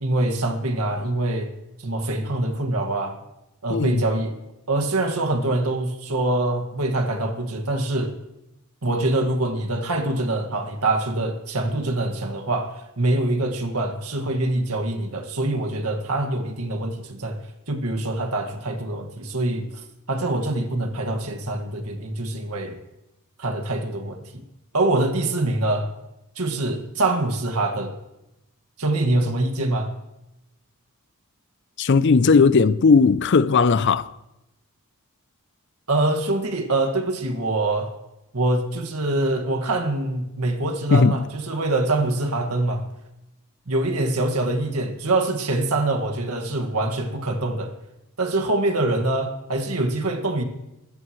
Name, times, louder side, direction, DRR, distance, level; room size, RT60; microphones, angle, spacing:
voice 1, 0.0-1.5 1.8-3.2 3.6-4.4 4.7-8.1 8.8-17.4 17.7-22.8 23.4-24.4 24.7-25.9 26.4-27.9 28.8-29.9 35.9-37.9 38.3-42.9 43.7-47.7 48.2-50.4, right 2 dB, 80° right, 1.9 m, -24 dB
voice 2, 3.7-4.0 31.8-34.1 40.9-41.2, left 4 dB, 55° left, 0.5 m, -17 dB
22.5 x 14.0 x 3.2 m
head